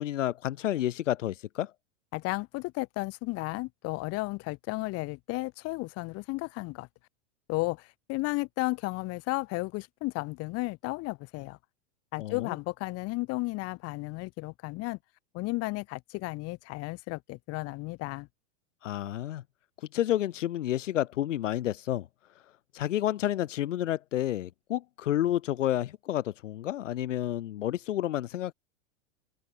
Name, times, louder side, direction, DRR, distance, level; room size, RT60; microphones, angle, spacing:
voice 1, 0.0-1.7 12.2-12.6 18.8-19.4 19.8-22.1 22.7-28.5, left 12 dB, 90° left, 2.8 m, -30 dB
voice 2, 2.1-6.9 7.5-11.6 12.1-15.0 15.3-18.3, left 23 dB, 40° left, 6.7 m, -33 dB
supercardioid pair, 150°, 36 cm